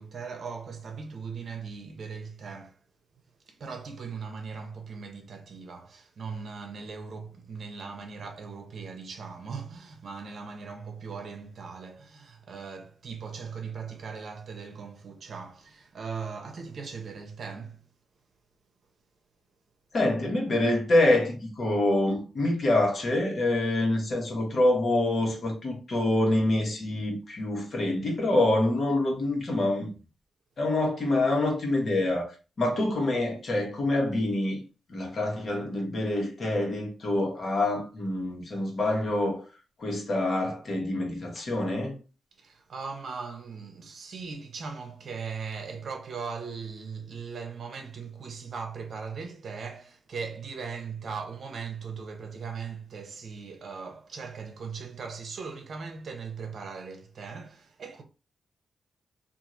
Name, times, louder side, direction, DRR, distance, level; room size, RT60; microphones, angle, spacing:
voice 1, 0.0-2.8 3.5-17.9 42.3-58.0, right 5 dB, 65° right, 0.7 m, -39 dB
voice 2, 19.9-29.9 30.6-32.3 32.6-34.6 34.9-39.4 39.8-42.0, left 1 dB, 55° left, 1.2 m, -26 dB
2.9 x 2.5 x 2.5 m
cardioid pair, 70°, 0 cm